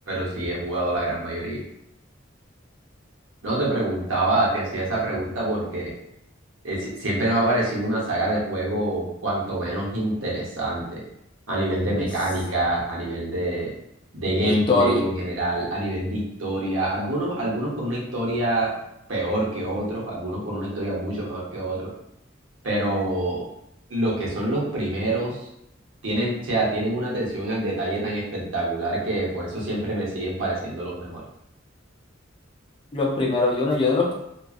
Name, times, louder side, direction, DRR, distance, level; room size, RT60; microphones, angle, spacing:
voice 1, 0.1-1.6 3.4-5.9 6.6-11.0 11.5-13.7 14.1-18.7 19.1-21.9 22.6-23.4 23.9-25.5 26.0-31.2, right 1 dB, 80° right, -4 dB, 0.9 m, -26 dB
voice 2, 14.4-15.0 32.9-34.1, left 3 dB, 25° left, -2 dB, 0.4 m, -21 dB
2.5 x 2.3 x 2.3 m, 0.80 s
head